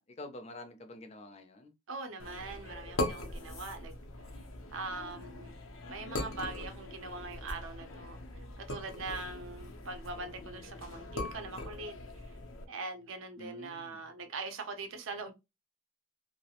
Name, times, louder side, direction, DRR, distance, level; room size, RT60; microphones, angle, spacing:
voice 1, 0.0-1.7 13.4-14.0, left 1 dB, 30° left, 0.4 m, -47 dB
voice 2, 1.9-4.0 4.7-5.6 5.9-8.2 8.6-11.9 12.7-15.3, right 3 dB, 80° right, 0.5 m, -42 dB
sound 1, 2.2-12.7, left 2 dB, 85° left, 0.5 m, -41 dB
2.3 x 2.0 x 2.8 m
head